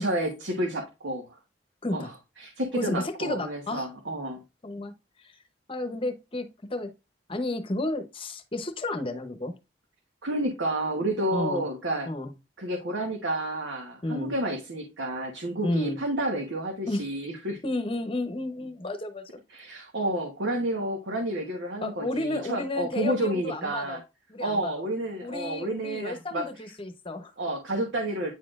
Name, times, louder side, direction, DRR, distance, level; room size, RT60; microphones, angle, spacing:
voice 1, 0.0-1.4 1.9-2.1 2.4-4.4 10.2-12.1 12.6-17.6 19.5-24.0 24.4-26.4 27.4-28.3, right 1 dB, 85° right, 1.1 m, -30 dB
voice 2, 2.7-3.9 4.6-4.9 5.2-5.3 5.7-6.9 7.3-9.5 11.3-11.6 12.1-12.3 14.0-14.3 15.6-16.0 16.9-17.1 17.6-19.4 21.8-24.0 24.3-24.9 25.2-27.3, left 2 dB, 30° left, 0.8 m, -32 dB
9.3 x 4.2 x 2.4 m
head